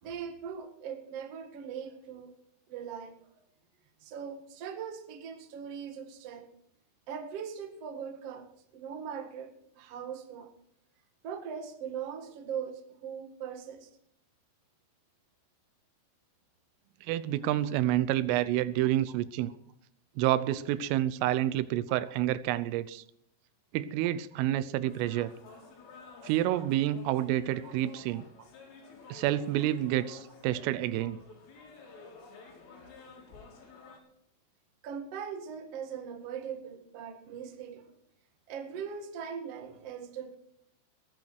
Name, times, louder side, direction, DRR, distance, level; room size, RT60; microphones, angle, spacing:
voice 1, 0.0-2.4 2.7-3.1 4.0-6.5 7.1-10.5 11.2-13.9 19.1-19.2 27.0-27.3 27.6-27.7 28.1-28.5 34.8-37.9 38.5-40.4, right 7 dB, 60° right, 5 dB, 1.6 m, -40 dB
voice 2, 17.1-19.5 20.2-23.0 23.7-25.3 26.2-28.2 29.1-31.2, right 13 dB, 90° right, 15 dB, 3.4 m, -29 dB
sound 1, 24.8-34.0, left 4 dB, 85° left, 6.0 m, -51 dB
20.0 x 11.0 x 4.6 m, 0.71 s
omnidirectional pair, 5.7 m